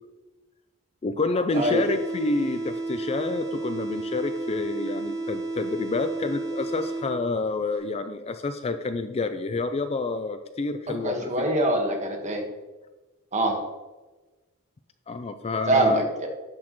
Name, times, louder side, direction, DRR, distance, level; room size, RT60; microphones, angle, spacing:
voice 1, 1.0-11.3 15.1-16.0, left 3 dB, 30° left, 9 dB, 0.4 m, -28 dB
sound 1, 1.5-7.5, right 2 dB, 15° right, 1.5 m, -32 dB
voice 2, 1.5-1.9 10.9-12.4 13.3-13.6 15.7-16.3, right 1 dB, 35° right, 2 dB, 1.4 m, -24 dB
10.0 x 6.1 x 3.1 m, 1.2 s
head